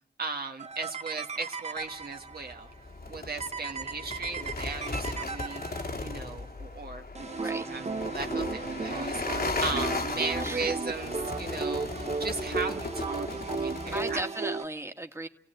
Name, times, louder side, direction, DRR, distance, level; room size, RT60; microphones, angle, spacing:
voice 1, 0.2-2.7 3.1-5.6 6.0-7.4 7.7-14.2, right 4 dB, 60° right, 4 dB, 1.4 m, -37 dB
sound 1, 0.6-2.5 3.4-6.2 7.1-14.7, right 4 dB, 35° right, 0.8 m, -35 dB
sound 2, 2.3-14.2, left 3 dB, 55° left, 2.1 m, -36 dB
voice 2, 10.4-10.7 13.9-15.3, right 2 dB, 15° right, 5 dB, 1.8 m, -35 dB
29.5 x 16.5 x 9.1 m, 0.88 s
cardioid pair, 55°, 18 cm